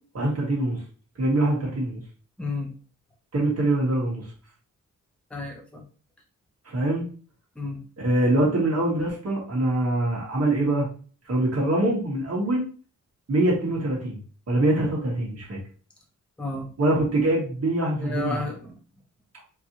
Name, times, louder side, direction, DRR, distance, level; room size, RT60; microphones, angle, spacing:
voice 1, 0.1-0.8 1.2-2.0 3.3-4.2 6.6-7.1 8.0-10.9 11.3-12.6 13.3-14.2 14.5-15.6 16.8-18.4, right 1 dB, 50° right, -3 dB, 1.5 m, -24 dB
voice 2, 2.4-2.7 5.3-5.8 7.6-7.8 16.4-16.7 18.0-18.7, left 3 dB, 5° left, 1 dB, 0.7 m, -32 dB
4.5 x 2.8 x 2.9 m, 0.39 s
wide cardioid pair, 170°, 32 cm